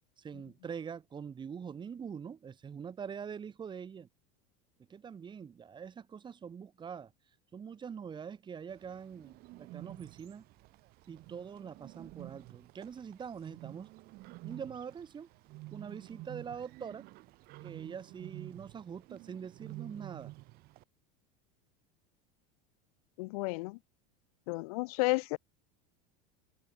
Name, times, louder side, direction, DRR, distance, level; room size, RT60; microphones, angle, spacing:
voice 1, 0.2-4.1 4.9-7.1 7.5-10.4 11.1-13.9 14.4-15.3 15.7-17.0 17.6-20.3, right 7 dB, 25° right, 5.0 m, -44 dB
Bird, 8.7-20.8, right 21 dB, 55° right, 2.1 m, -50 dB
voice 2, 23.2-23.8 24.5-25.4, left 25 dB, 75° left, 1.2 m, -32 dB
supercardioid pair, 135°, 19 cm